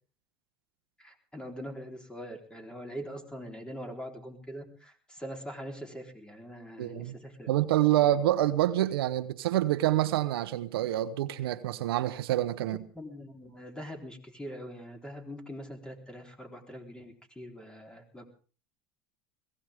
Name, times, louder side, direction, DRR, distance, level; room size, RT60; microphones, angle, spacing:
voice 1, 1.0-7.5 7.9-8.1 12.9-18.2, equal, 5° left, 3.8 m, -43 dB
voice 2, 6.8-7.1 7.5-12.8, right 14 dB, 90° right, 1.1 m, -27 dB
21.5 x 17.0 x 3.7 m
supercardioid pair, 105°, 12 cm